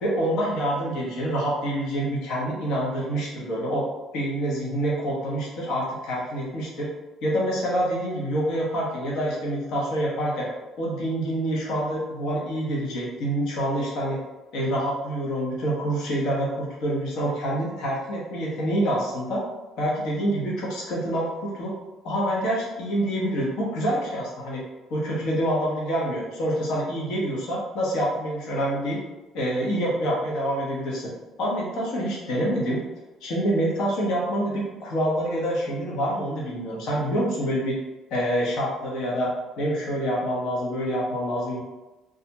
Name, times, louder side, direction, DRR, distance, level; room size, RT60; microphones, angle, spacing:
voice 1, 0.0-3.8 4.1-6.9 7.2-10.5 10.8-14.2 14.5-19.4 19.8-21.7 22.0-24.6 24.9-29.0 29.3-31.1 31.4-32.8 33.2-37.8 38.1-39.3 39.6-41.6, right 1 dB, 75° left, -4 dB, 0.8 m, -26 dB
2.3 x 2.1 x 2.8 m, 1.1 s
supercardioid pair, 70°, 0 cm